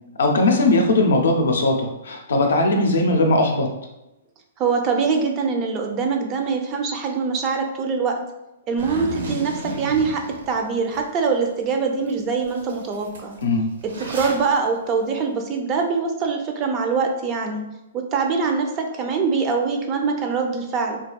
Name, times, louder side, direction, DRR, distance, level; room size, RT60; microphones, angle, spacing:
voice 1, 0.2-3.7 13.4-13.7, left 2 dB, 85° left, 3 dB, 0.5 m, -19 dB
voice 2, 4.6-8.2 8.7-13.3 13.8-17.6 17.9-21.0, right 5 dB, 25° right, 3 dB, 0.3 m, -23 dB
Zipper (clothing), 8.8-11.0 11.5-11.6 12.1-12.2 12.4-14.5, right 1 dB, 85° right, 0.7 m, -33 dB
2.7 x 2.4 x 2.2 m, 0.93 s
hypercardioid pair, 150°, 0 cm